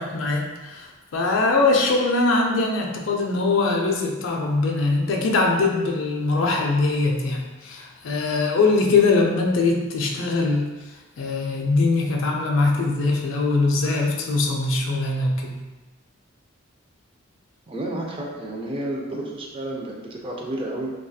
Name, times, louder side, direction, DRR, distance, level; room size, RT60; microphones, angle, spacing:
voice 1, 0.0-10.7 11.2-15.6, left 3 dB, 65° left, 0 dB, 0.4 m, -22 dB
voice 2, 17.7-20.9, right 1 dB, 25° right, 0 dB, 0.3 m, -31 dB
2.6 x 2.3 x 2.3 m, 1.1 s
head